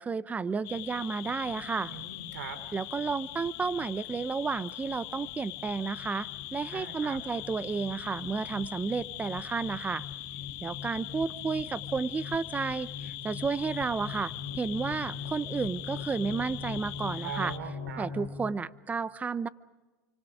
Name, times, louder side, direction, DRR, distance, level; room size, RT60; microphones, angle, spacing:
voice 1, 0.0-1.9 2.7-10.0 10.6-17.5 18.0-19.5, right 5 dB, 15° right, 17 dB, 0.8 m, -32 dB
sound 1, 0.6-17.6, left 19 dB, 55° left, 1.1 m, -41 dB
sound 2, 1.5-18.5, left 4 dB, 85° left, 2.9 m, -43 dB
voice 2, 1.8-2.6 6.7-7.2 17.2-18.1, right 7 dB, 85° right, 10 dB, 3.8 m, -40 dB
29.5 x 25.5 x 5.0 m, 1.2 s
supercardioid pair, 115°, 9 cm